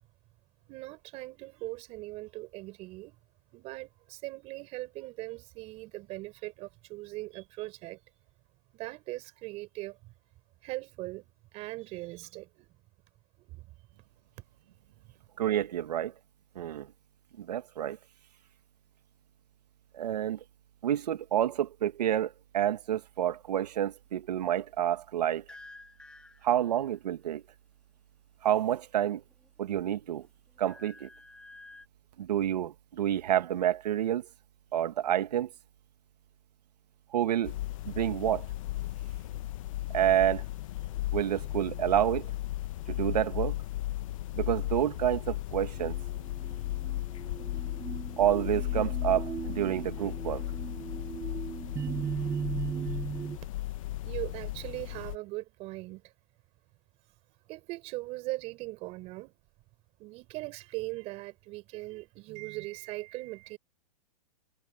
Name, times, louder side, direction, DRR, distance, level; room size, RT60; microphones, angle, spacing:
voice 1, 0.7-3.2 3.5-8.0 8.7-10.1 10.6-12.7 13.4-13.7 52.9-53.0 54.0-56.1 57.5-59.4 60.0-63.6, right 20 dB, 30° right, 5.1 m, -40 dB
voice 2, 15.4-16.1 16.6-16.9 17.4-18.0 19.9-20.4 20.8-25.4 26.4-27.4 28.4-29.2 29.6-30.3 30.6-31.1 32.2-34.3 34.7-35.5 37.1-37.6 37.9-38.5 39.9-40.5 41.1-42.3 42.9-43.6 44.3-46.0 48.2-50.4, right 11 dB, 75° right, 1.8 m, -28 dB
sound 1, 25.5-27.0 28.9-29.7 30.1-31.9, left 2 dB, 5° left, 2.2 m, -52 dB
sound 2, 37.4-55.2, left 15 dB, 50° left, 1.3 m, -36 dB
sound 3, 45.8-53.4, right 7 dB, 10° right, 0.7 m, -38 dB
hypercardioid pair, 155°, 21 cm